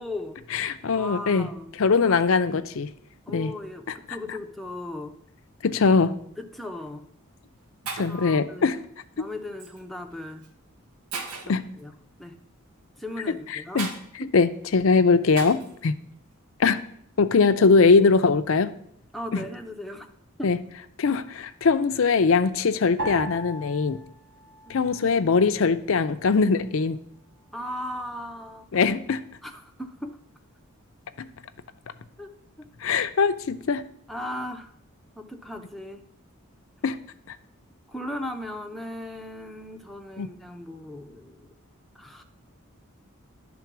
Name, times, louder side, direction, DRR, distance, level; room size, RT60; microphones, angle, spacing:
voice 1, 0.0-0.4 0.9-1.8 2.0-2.2 3.3-5.2 6.4-7.1 8.1-8.8 9.2-10.5 11.4-11.9 12.2-12.4 13.0-13.9 14.2-14.3 19.1-20.1 20.4-20.5 24.7-24.8 27.5-28.8 29.4-30.2 32.2-32.3 34.1-34.7 35.2-36.0 37.9-41.5 41.9-42.2, left 1 dB, ahead, 4 dB, 0.6 m, -37 dB
voice 2, 0.5-1.5 1.8-2.9 3.3-3.5 5.6-6.1 8.0-8.8 11.5-11.6 13.7-13.9 14.3-16.0 16.6-16.8 17.2-18.7 19.3-19.4 20.4-20.6 21.0-24.0 24.7-27.0 28.7-29.2 32.8-33.8 36.8-37.0 40.2-40.3, left 4 dB, 65° left, 11 dB, 0.5 m, -21 dB
Shatter, 6.6-6.8 7.5-7.6 7.9-8.3 9.6-9.8 10.4-10.5 11.1-11.6 13.8-14.0 15.4-15.7, right 4 dB, 90° right, 1.0 m, -35 dB
sound 1, 23.0-25.5 25.8-26.7 27.3-27.7, right 1 dB, 55° right, 2.2 m, -38 dB
10.5 x 3.8 x 5.9 m, 0.68 s
head